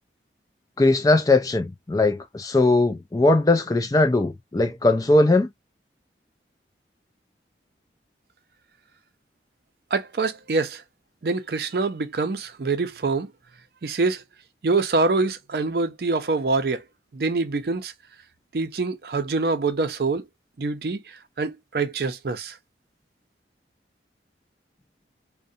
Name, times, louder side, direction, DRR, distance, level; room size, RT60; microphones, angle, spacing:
voice 1, 0.8-5.5, left 2 dB, 20° left, 0.4 m, -20 dB
voice 2, 9.9-10.8 11.2-13.3 13.8-14.2 14.6-16.8 17.1-17.9 18.5-20.2 20.6-21.0 21.4-22.5, right 3 dB, 55° right, 0.5 m, -25 dB
2.5 x 2.1 x 2.6 m
head